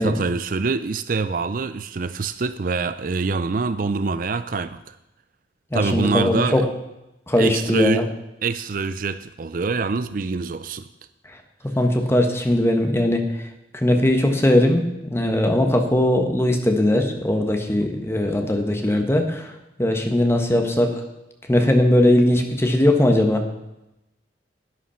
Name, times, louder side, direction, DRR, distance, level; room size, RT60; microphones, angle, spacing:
voice 1, 0.0-5.0 5.7-6.6 7.4-8.0 8.4-10.9, right 4 dB, 50° right, 13 dB, 0.5 m, -25 dB
voice 2, 5.7-6.7 7.3-8.0 11.7-13.3 13.7-19.5 19.8-21.0 21.5-23.4, left 1 dB, 15° left, 4 dB, 1.4 m, -19 dB
11.0 x 9.8 x 5.7 m, 0.93 s
head